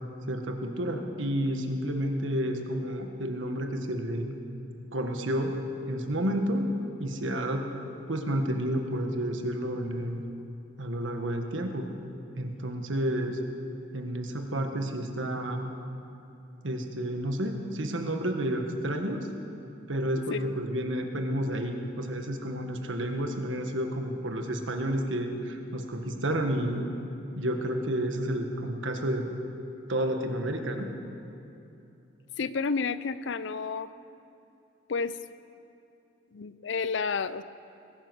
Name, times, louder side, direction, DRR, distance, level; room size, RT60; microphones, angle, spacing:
voice 1, 0.3-4.3 4.9-5.6 5.9-6.7 7.0-7.7 8.1-10.2 10.8-11.9 12.3-13.4 13.9-15.7 16.6-19.3 19.9-26.8 27.3-29.3 29.9-30.9, right 1 dB, 80° right, 4 dB, 1.5 m, -30 dB
voice 2, 32.4-33.9 34.9-35.2 36.3-37.4, left 5 dB, 65° left, 15 dB, 0.5 m, -30 dB
20.5 x 9.6 x 6.3 m, 2.8 s
head